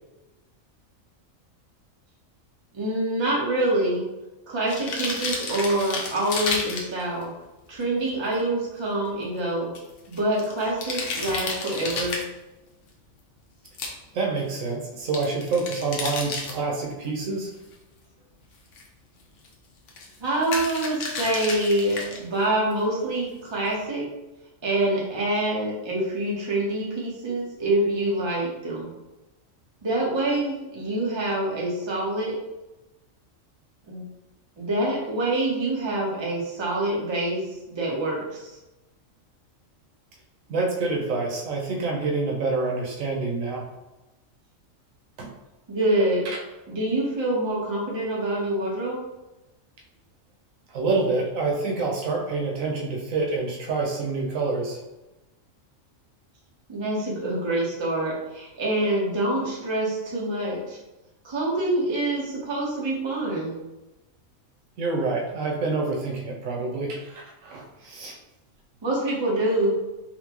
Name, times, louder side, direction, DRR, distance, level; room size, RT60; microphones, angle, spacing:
voice 1, 2.7-4.0 4.5-7.3 7.7-9.7 10.1-12.2 20.2-24.1 24.6-28.9 29.8-32.4 33.9-34.0 34.6-37.4 37.7-38.5 45.7-46.2 46.7-49.0 56.7-60.8 61.2-63.6 68.8-69.7, right 1 dB, 25° right, -4 dB, 0.7 m, -26 dB
sound 1, 4.7-7.2 7.8-7.9 8.1-8.2 8.4-8.5 9.7-12.2 13.6-13.9 15.1-16.5 17.7-17.8 18.7-18.9 19.2-19.5 19.9-20.2 20.4-22.2 22.7-22.8, left 3 dB, 75° left, 1.0 m, -31 dB
voice 2, 14.1-17.5 40.5-43.6 45.2-45.3 46.2-46.4 50.7-54.8 64.8-68.2, right 3 dB, 85° right, 0 dB, 1.2 m, -27 dB
4.3 x 2.1 x 2.9 m, 1.0 s
omnidirectional pair, 1.3 m